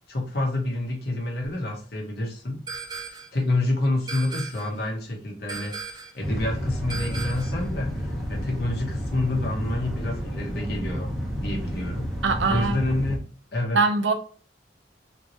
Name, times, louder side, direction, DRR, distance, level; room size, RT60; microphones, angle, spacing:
voice 1, 0.1-2.6 3.3-12.1 12.5-13.2 13.5-13.8, left 2 dB, 55° left, 1.1 m, -28 dB
sound 1, 2.7-3.4 4.1-4.8 5.5-6.2 6.9-7.6, right 5 dB, 20° right, 0.4 m, -37 dB
sound 2, 6.2-13.2, equal, ahead, 0.8 m, -31 dB
voice 2, 12.2-12.8 13.7-14.1, right 4 dB, 75° right, 0.6 m, -22 dB
3.6 x 2.9 x 2.9 m
head